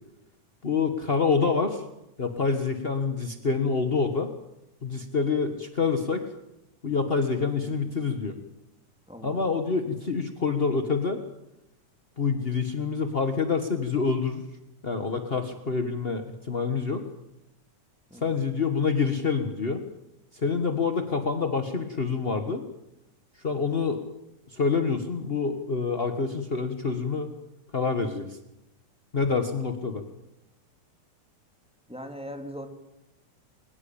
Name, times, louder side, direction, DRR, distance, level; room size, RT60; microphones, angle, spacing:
voice 1, 0.6-1.8 2.2-4.3 4.8-6.2 6.8-8.3 9.2-11.2 12.2-14.4 14.8-17.0 18.2-19.8 20.3-22.6 23.4-24.0 24.5-27.3 27.7-28.4 29.1-30.0, left 5 dB, 40° left, 7 dB, 0.8 m, -27 dB
voice 2, 9.1-9.4 18.1-18.3 31.9-32.7, equal, ahead, 5 dB, 2.8 m, -39 dB
22.5 x 20.5 x 8.7 m, 0.88 s
omnidirectional pair, 3.4 m